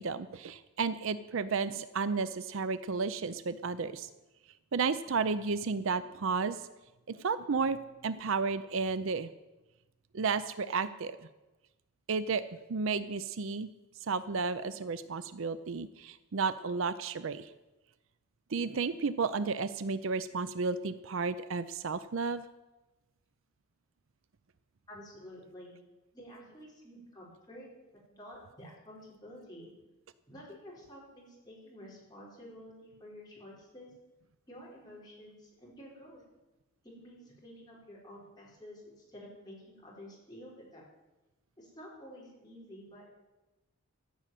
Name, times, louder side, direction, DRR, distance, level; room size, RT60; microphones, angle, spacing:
voice 1, 0.0-4.1 4.7-6.6 7.1-9.3 10.1-11.2 12.1-12.4 12.7-13.7 14.1-17.5 18.5-22.4, right 4 dB, 60° right, 14 dB, 0.5 m, -32 dB
voice 2, 24.9-25.8 26.1-27.7 28.1-29.7 30.3-33.9 34.5-36.2 36.8-40.8 41.6-43.1, equal, 20° left, -5 dB, 4.4 m, -50 dB
14.5 x 6.3 x 9.1 m, 1.0 s
head